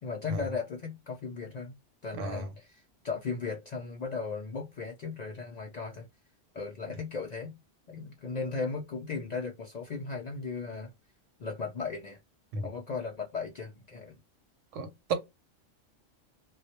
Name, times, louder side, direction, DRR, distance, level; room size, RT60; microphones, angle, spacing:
voice 1, 0.0-1.7 2.0-6.1 6.5-7.6 7.9-10.9 11.4-12.2 12.6-14.2, left 4 dB, 65° left, 0.4 m, -36 dB
voice 2, 2.2-2.5 12.5-12.6 14.7-15.1, right 4 dB, 90° right, 1.0 m, -33 dB
2.2 x 2.0 x 2.8 m
omnidirectional pair, 1.2 m